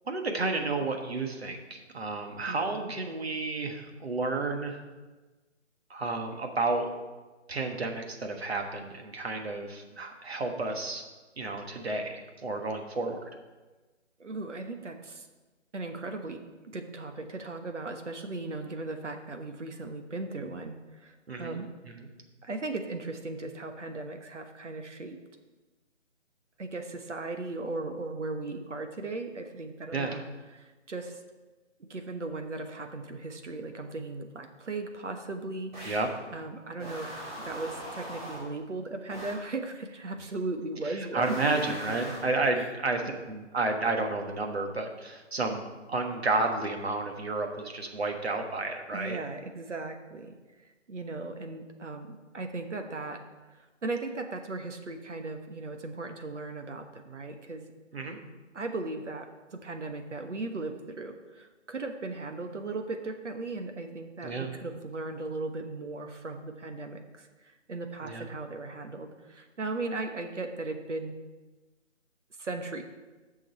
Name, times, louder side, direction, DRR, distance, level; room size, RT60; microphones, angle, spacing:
voice 1, 0.1-4.8 5.9-6.9 7.5-11.0 11.4-13.3 21.3-22.1 29.9-30.2 35.8-36.1 40.8-49.2 57.9-58.2 64.2-64.5 68.0-68.3, right 3 dB, 55° right, 4 dB, 1.4 m, -31 dB
voice 2, 2.5-2.9 14.2-15.2 15.7-16.4 16.7-21.7 22.4-25.2 26.6-30.2 30.5-31.2 31.8-35.7 36.3-41.7 42.5-42.7 43.0-43.1 48.9-50.3 50.9-53.2 53.8-57.6 58.5-71.1 72.4-72.8, right 3 dB, 70° right, 6 dB, 1.3 m, -37 dB
sound 1, 35.7-36.2 36.8-38.6 39.1-39.5 41.2-42.4, equal, 40° right, 3.4 m, -41 dB
7.3 x 6.5 x 6.5 m, 1.2 s
hypercardioid pair, 175°, 37 cm